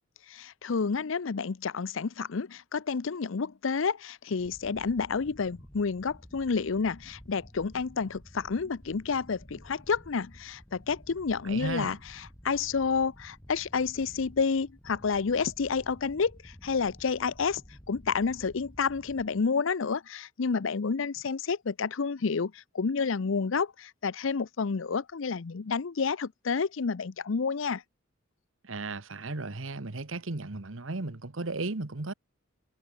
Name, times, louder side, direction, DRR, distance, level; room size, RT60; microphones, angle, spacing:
voice 1, 0.3-12.0 12.4-17.6 17.9-27.8, left 5 dB, 70° left, 0.6 m, -30 dB
sound 1, 4.4-19.4, equal, 15° left, 2.4 m, -52 dB
voice 2, 11.4-12.0 28.6-32.1, right 3 dB, 75° right, 1.3 m, -35 dB
head